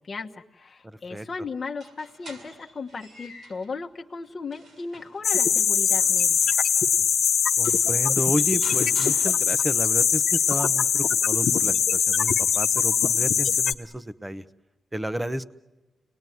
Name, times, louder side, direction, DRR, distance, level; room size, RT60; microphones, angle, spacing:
voice 1, 0.0-6.6, left 4 dB, 40° left, 2 dB, 1.1 m, -36 dB
sound 1, 1.6-3.7 4.2-6.8 7.3-7.4 7.6-9.9, right 1 dB, 80° right, 6.6 m, -46 dB
sound 2, 5.2-13.7, left 7 dB, 80° left, 1.1 m, -22 dB
voice 2, 7.6-14.4 14.9-15.5, right 1 dB, 10° right, 13 dB, 0.9 m, -31 dB
30.0 x 20.0 x 9.4 m, 1.2 s
wide cardioid pair, 125°, 0 cm